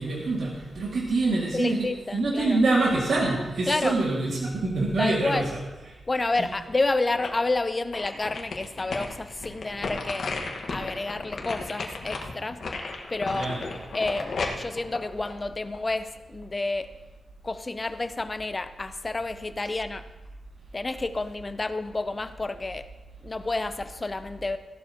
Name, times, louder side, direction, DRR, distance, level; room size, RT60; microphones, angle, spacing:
voice 1, 0.0-1.9 2.1-5.5 13.3-13.6, right 2 dB, 70° right, -3 dB, 2.0 m, -25 dB
voice 2, 1.5-2.6 3.6-4.0 5.0-5.5 6.1-10.3 10.7-12.6 13.1-13.6 13.9-16.9 17.4-20.1 20.7-22.8 23.2-24.6, left 2 dB, 25° left, 11 dB, 0.5 m, -29 dB
sound 1, 6.7-7.5 7.9-16.0 16.4-16.5, left 3 dB, 65° left, 1.4 m, -34 dB
15.5 x 11.5 x 2.8 m, 1.1 s
wide cardioid pair, 120°, 0 cm